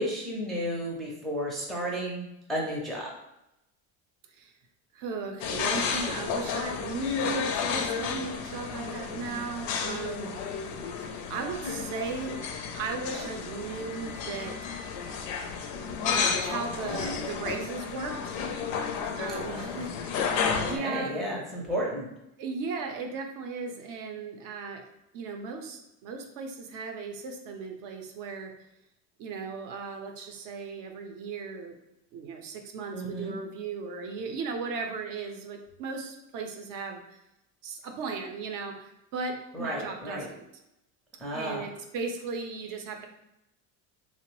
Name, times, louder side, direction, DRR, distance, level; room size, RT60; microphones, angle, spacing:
voice 1, 0.0-2.2 2.5-3.1 19.4-19.9 20.5-22.1 32.9-33.4 39.5-40.3 41.2-41.6, equal, ahead, -4 dB, 0.4 m, -33 dB
voice 2, 4.9-10.4 11.0-12.4 12.7-15.0 16.1-18.5 19.2-20.4 20.6-21.2 22.4-24.8 25.1-28.5 29.2-31.8 32.1-37.2 37.6-40.4 41.3-43.1, right 4 dB, 60° right, 3 dB, 0.5 m, -36 dB
sound 1, 5.4-20.8, left 6 dB, 60° left, 0.5 m, -32 dB
3.0 x 2.0 x 2.9 m, 0.86 s
supercardioid pair, 130°, 39 cm